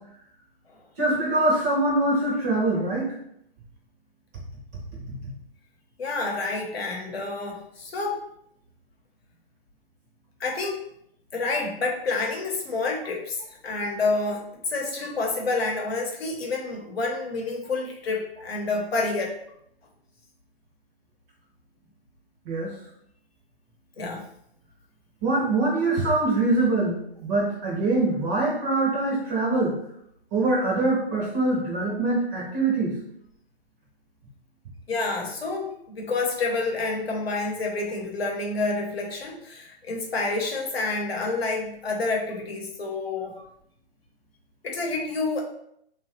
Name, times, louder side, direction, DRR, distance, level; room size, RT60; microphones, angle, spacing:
voice 1, 1.0-3.1 22.5-22.8 25.2-29.7 30.3-32.9 43.4-43.5, right 2 dB, 15° right, -3 dB, 0.5 m, -23 dB
voice 2, 6.0-8.3 10.4-10.8 11.3-19.3 24.0-24.2 34.9-43.3 44.6-45.4, left 3 dB, 75° left, 0 dB, 0.9 m, -28 dB
3.0 x 2.3 x 2.9 m, 0.72 s
hypercardioid pair, 135°, 31 cm